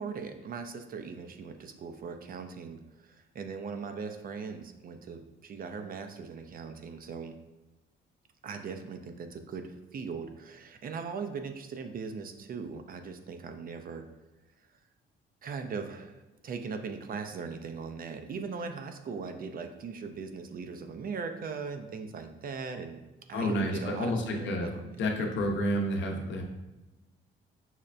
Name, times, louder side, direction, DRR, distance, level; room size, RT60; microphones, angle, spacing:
voice 1, 0.0-7.3 8.4-14.0 15.4-23.0 23.3-24.8 25.2-25.4, right 5 dB, 45° right, 6 dB, 0.4 m, -39 dB
voice 2, 23.3-24.7 25.0-26.4, equal, 70° left, 2 dB, 0.7 m, -30 dB
5.6 x 2.1 x 2.5 m, 1.1 s
cardioid pair, 90°, 20 cm